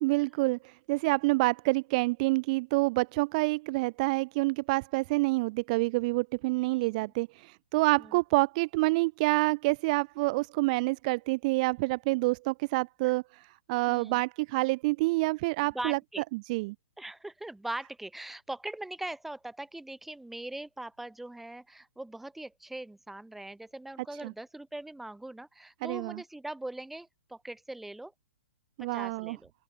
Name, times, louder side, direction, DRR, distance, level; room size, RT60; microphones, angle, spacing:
voice 1, 0.0-13.4 13.7-16.0 16.3-16.7 24.2-24.3 25.8-26.2 28.8-29.4, right 24 dB, 35° right, 0.9 m, -27 dB
voice 2, 6.6-7.1 8.0-8.2 13.0-13.1 13.9-14.2 15.7-16.2 17.0-28.1 28.9-29.5, right 1 dB, 5° right, 2.3 m, -41 dB
open air
hypercardioid pair, 155°, 7 cm